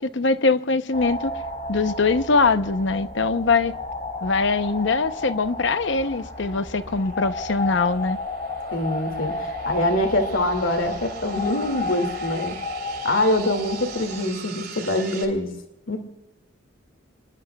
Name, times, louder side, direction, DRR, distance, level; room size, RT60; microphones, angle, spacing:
voice 1, 0.0-1.3 1.7-3.7 4.2-8.2, left 4 dB, 65° left, 0.8 m, -22 dB
sound 1, 0.9-14.2, left 3 dB, 45° left, 1.6 m, -32 dB
sound 2, 4.6-15.3, right 7 dB, 50° right, 3.2 m, -43 dB
voice 2, 8.7-12.6 13.0-15.5 15.9-16.0, left 1 dB, 85° left, 2.3 m, -24 dB
28.5 x 21.0 x 2.3 m
head